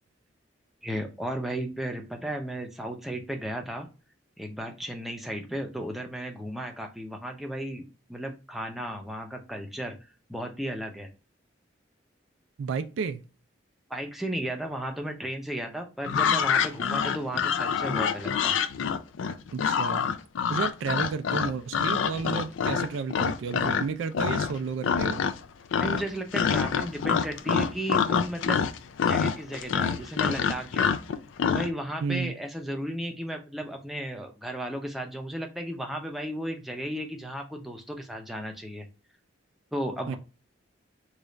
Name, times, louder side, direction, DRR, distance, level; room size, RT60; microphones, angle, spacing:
voice 1, 0.8-3.9 4.4-10.0 10.3-11.1 13.9-18.6 25.8-28.6 29.0-30.9 31.5-38.9 39.7-40.2, right 1 dB, ahead, 0.5 m, -34 dB
voice 2, 12.6-13.2 19.5-20.1 20.5-25.3 32.0-32.3 40.1-40.2, right 5 dB, 75° right, 0.3 m, -32 dB
sound 1, 16.0-23.9 24.1-24.6 24.8-25.5 25.7-31.7, left 6 dB, 80° left, 0.3 m, -26 dB
3.2 x 2.3 x 3.8 m
head